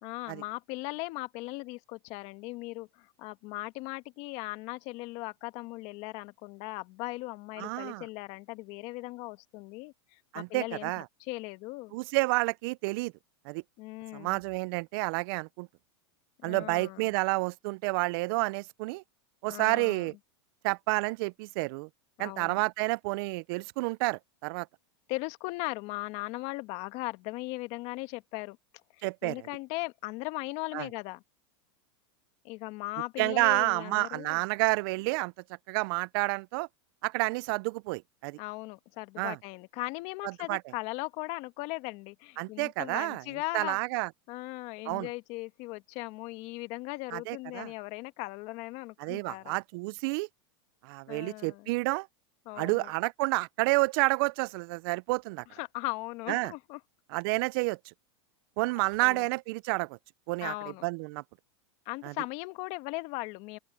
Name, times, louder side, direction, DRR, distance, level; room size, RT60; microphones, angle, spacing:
voice 1, 0.0-10.9 11.2-11.9 13.8-14.4 16.4-17.1 19.5-20.1 22.2-22.6 25.1-28.6 29.2-31.2 32.4-34.4 38.4-43.8 44.3-49.6 51.1-51.7 52.4-52.9 55.5-56.8 59.0-59.3 60.4-60.8 61.8-63.6, left 22 dB, 50° left, 1.6 m, -38 dB
voice 2, 7.6-8.0 10.3-11.0 11.9-13.1 13.5-13.6 14.1-15.7 16.4-19.0 19.4-20.1 20.6-21.9 22.2-24.7 29.0-29.5 30.7-30.9 33.2-35.3 35.7-36.7 37.0-38.4 39.2-39.4 40.2-40.6 42.4-43.2 43.5-44.1 44.9-45.1 47.1-47.7 49.0-50.3 50.8-52.1 52.6-55.4 56.3-56.5 57.1-57.8 58.6-60.0 60.3-60.5 60.8-61.2 62.0-62.1, right 25 dB, 55° right, 0.5 m, -30 dB
open air
supercardioid pair, 120°, 14 cm